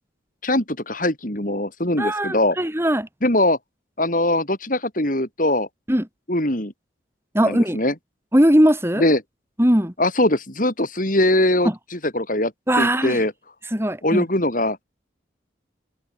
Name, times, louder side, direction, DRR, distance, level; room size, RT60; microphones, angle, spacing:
voice 1, 0.4-2.6 3.2-3.6 4.0-5.7 6.3-6.7 7.4-7.9 9.0-9.2 10.0-12.5 12.8-13.3 14.0-14.8, left 1 dB, 45° left, 4.7 m, -21 dB
voice 2, 2.0-3.1 5.9-6.1 7.3-7.8 8.3-9.0 9.6-9.9 12.7-13.2 13.7-14.2, equal, 15° right, 3.2 m, -19 dB
head